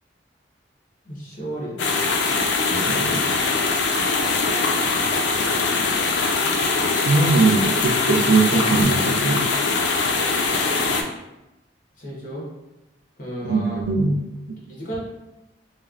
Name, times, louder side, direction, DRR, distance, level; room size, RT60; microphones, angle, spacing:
voice 1, 1.0-1.9 5.2-5.8 12.0-12.5 13.2-13.8 14.7-15.0, right 1 dB, 50° left, -5 dB, 1.0 m, -34 dB
sound 1, 1.8-11.0, left 4 dB, 80° left, 0.4 m, -22 dB
voice 2, 2.7-3.2 6.9-9.5 13.4-14.6, right 3 dB, 75° right, 3 dB, 0.4 m, -21 dB
3.0 x 2.1 x 2.4 m, 0.98 s
head